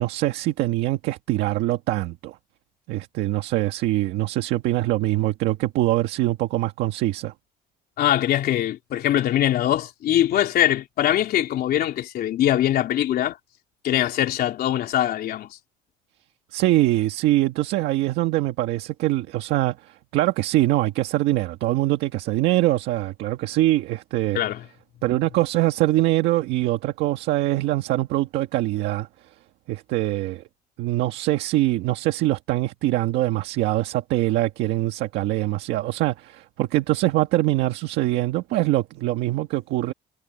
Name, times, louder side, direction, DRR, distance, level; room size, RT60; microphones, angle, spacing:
voice 1, 0.0-2.4 2.9-7.3 16.5-24.4 25.0-29.1 29.7-30.4 30.8-39.9, right 16 dB, 90° right, 1.7 m, -23 dB
voice 2, 8.0-13.4 13.8-15.5 24.3-24.6, left 12 dB, 65° left, 3.4 m, -22 dB
cardioid pair, 110°, 17 cm